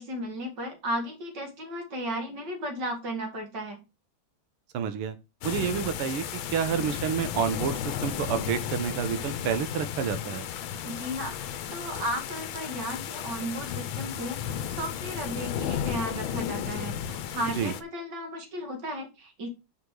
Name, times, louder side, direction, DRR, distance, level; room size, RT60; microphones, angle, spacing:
voice 1, 0.0-3.8 10.8-19.5, equal, 50° right, 4 dB, 2.6 m, -35 dB
voice 2, 4.7-5.2 5.4-6.2 6.5-10.4 17.6-17.7, right 8 dB, 90° right, 10 dB, 1.9 m, -29 dB
sound 1, 5.4-17.8, left 9 dB, 70° left, 1.4 m, -34 dB
5.8 x 4.9 x 6.3 m, 0.28 s
omnidirectional pair, 2.4 m